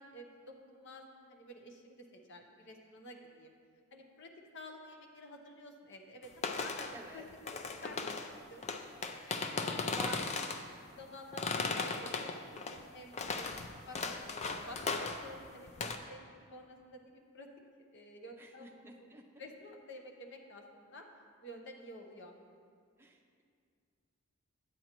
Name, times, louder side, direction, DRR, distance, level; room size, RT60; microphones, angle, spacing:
voice 1, 0.0-3.5 3.9-10.1 10.9-11.9 12.6-14.8 15.2-17.5 17.9-18.7 19.0-19.1 19.4-21.1 21.4-22.3, left 1 dB, 55° left, 2 dB, 0.9 m, -51 dB
sound 1, 6.3-7.0 7.3-8.3 8.6-10.7 11.3-12.8 13.1-15.4 15.7-16.0, left 4 dB, 30° left, 0.4 m, -37 dB
voice 2, 6.9-7.3 9.9-10.3 12.1-12.4 14.8-15.1 18.4-19.2 23.0-23.4, right 2 dB, 10° right, 1 dB, 0.6 m, -49 dB
9.9 x 7.9 x 3.0 m, 2.1 s
head